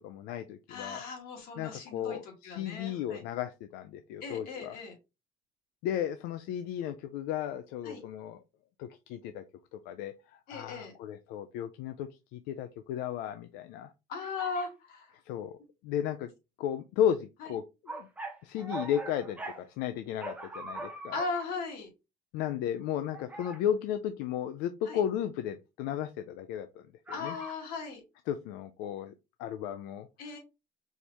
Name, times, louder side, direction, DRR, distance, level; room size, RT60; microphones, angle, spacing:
voice 1, 0.0-1.0 1.6-4.8 5.8-8.4 8.8-9.4 9.7-13.9 15.2-15.5 15.8-16.3 16.6-18.1 18.4-21.2 22.3-27.4 28.3-29.1 29.4-30.1, left 10 dB, 90° left, 9 dB, 0.4 m, -34 dB
voice 2, 0.7-3.2 4.2-4.9 7.8-8.0 10.5-10.9 14.1-15.2 17.4-17.5 21.1-21.9 24.9-25.0 27.1-28.0 30.2-30.4, left 4 dB, 70° left, 2 dB, 2.1 m, -38 dB
sound 1, 14.2-14.7 17.9-19.6 20.2-21.5 23.1-23.6 27.1-27.6, right 2 dB, 10° right, 0.8 m, -41 dB
4.5 x 2.9 x 3.3 m, 0.26 s
cardioid pair, 150°, 16 cm